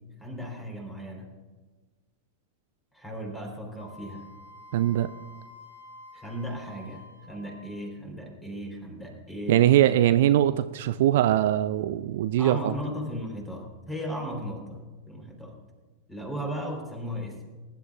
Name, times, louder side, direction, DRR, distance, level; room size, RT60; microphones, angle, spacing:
voice 1, 0.2-1.4 2.9-4.3 6.1-9.6 12.4-15.6 16.1-17.6, equal, 5° left, 2 dB, 3.5 m, -36 dB
Wind instrument woodwind instrument, 3.7-7.9, left 2 dB, 65° left, 3.3 m, -49 dB
voice 2, 4.7-5.1 9.5-12.7, right 12 dB, 55° right, 13 dB, 0.4 m, -21 dB
22.0 x 11.5 x 2.4 m, 1.3 s
figure-of-eight pair, 90°, 0 cm